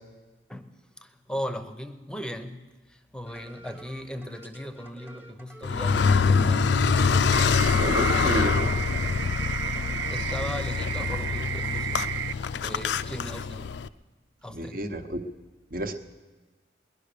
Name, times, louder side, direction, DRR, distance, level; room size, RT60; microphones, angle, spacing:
voice 1, 0.5-6.9 9.8-12.2 12.6-13.7 14.4-14.9, equal, 5° left, 9 dB, 0.8 m, -38 dB
sound 1, 3.3-10.2, right 1 dB, 10° right, 1.1 m, -49 dB
Car, 5.6-13.9, left 5 dB, 70° left, 0.4 m, -25 dB
sound 2, 7.3-12.3, right 11 dB, 85° right, 0.4 m, -33 dB
voice 2, 7.8-8.7 9.9-10.0 14.5-15.2 15.7-15.9, right 1 dB, 50° right, 8 dB, 1.0 m, -30 dB
19.5 x 11.0 x 6.8 m, 1.3 s
head